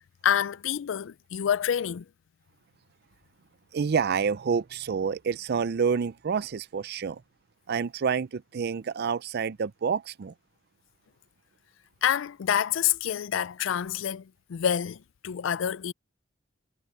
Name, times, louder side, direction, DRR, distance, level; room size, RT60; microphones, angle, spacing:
voice 1, 0.2-2.1 12.0-15.9, left 9 dB, 70° left, 0.4 m, -27 dB
voice 2, 3.7-7.2 7.7-10.3, right 6 dB, 55° right, 0.4 m, -28 dB
head